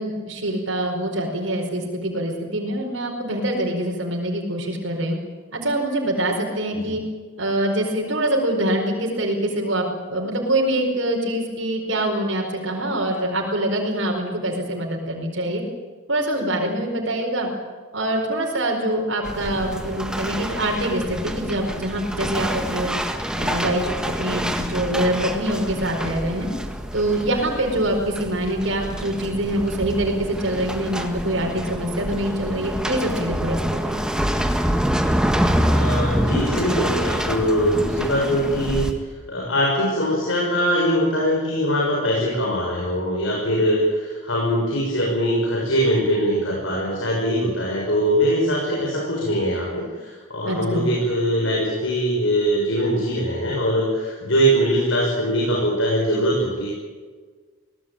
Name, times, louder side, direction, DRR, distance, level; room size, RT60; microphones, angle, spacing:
voice 1, 0.0-5.2 5.5-7.0 7.4-15.6 16.1-17.5 17.9-23.0 23.4-26.5 26.9-34.0 50.4-50.9, right 1 dB, 85° right, 1 dB, 4.8 m, -24 dB
sound 1, 19.2-38.9, equal, 5° right, 1.7 m, -26 dB
voice 2, 35.7-38.8 39.3-56.7, equal, 85° left, -2 dB, 6.6 m, -22 dB
23.0 x 18.5 x 9.1 m, 1.5 s
head